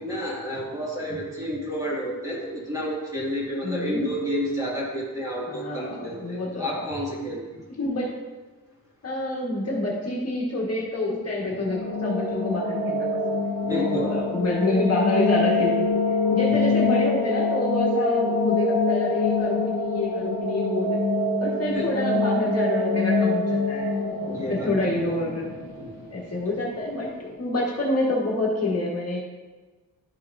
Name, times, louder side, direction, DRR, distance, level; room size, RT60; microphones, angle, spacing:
voice 1, 0.0-7.4 13.6-14.0 14.3-14.4 16.3-16.6 21.7-21.9 24.3-24.7 25.0-25.2 25.8-25.9, equal, 10° right, -6 dB, 2.1 m, -30 dB
voice 2, 3.6-4.1 5.5-6.7 7.8-8.1 9.0-13.4 13.7-16.0 16.3-21.0 21.4-23.9 24.5-25.5 26.1-29.2, left 2 dB, 45° left, -3 dB, 1.5 m, -27 dB
sound 1, 11.4-26.3, left 3 dB, 70° left, 1.2 m, -25 dB
12.0 x 5.7 x 2.6 m, 1.3 s
wide cardioid pair, 145°, 36 cm